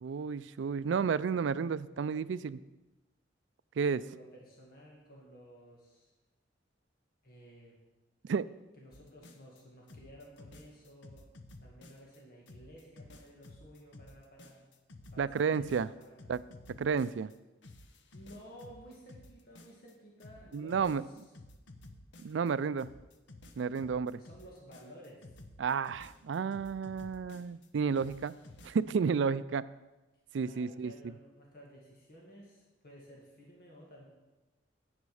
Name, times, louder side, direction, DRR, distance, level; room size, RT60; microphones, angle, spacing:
voice 1, 0.0-2.6 3.8-4.0 8.3-8.5 15.2-15.9 16.3-16.4 16.8-17.3 20.5-21.0 22.2-22.9 23.6-24.2 25.6-28.3 28.6-29.6 30.3-30.9, right 6 dB, 75° right, 16 dB, 0.4 m, -31 dB
voice 2, 4.0-6.1 7.2-7.8 8.8-11.2 11.6-14.7 15.1-16.2 18.1-21.1 24.1-25.4 30.4-34.1, equal, 55° left, -2 dB, 2.1 m, -54 dB
sound 1, 8.9-9.6 9.9-12.2 12.5-17.4 17.6-19.9 20.2-22.5 22.8-27.7 27.9-28.8, left 2 dB, 70° left, 0.8 m, -53 dB
11.0 x 8.1 x 4.9 m, 1.1 s
head